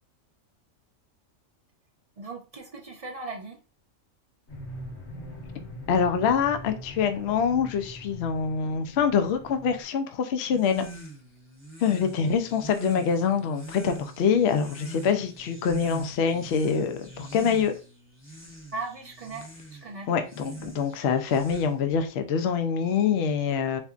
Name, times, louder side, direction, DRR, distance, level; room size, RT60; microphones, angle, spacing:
voice 1, 2.2-3.6 18.7-20.1, right 3 dB, 55° right, 0.4 m, -38 dB
sound 1, 4.5-9.8, left 1 dB, 80° left, 1.8 m, -42 dB
voice 2, 5.9-10.9 11.8-17.7 20.1-23.8, left 6 dB, 65° left, 0.7 m, -25 dB
sound 2, 10.5-22.0, right 1 dB, 10° left, 0.7 m, -43 dB
4.2 x 2.7 x 2.4 m
omnidirectional pair, 1.4 m